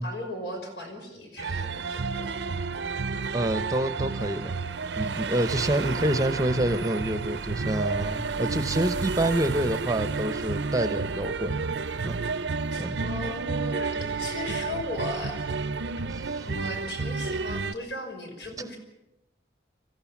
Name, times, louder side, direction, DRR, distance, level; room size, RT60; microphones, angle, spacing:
voice 1, 0.0-2.2 12.7-15.4 16.4-18.8, left 2 dB, 70° left, 3 dB, 5.6 m, -37 dB
sound 1, 1.4-17.7, right 4 dB, 80° right, 0.7 m, -31 dB
voice 2, 3.3-4.6 4.9-12.2 12.8-13.1 16.1-16.5, right 1 dB, 20° right, 11 dB, 0.8 m, -28 dB
25.0 x 15.0 x 7.3 m, 0.89 s
head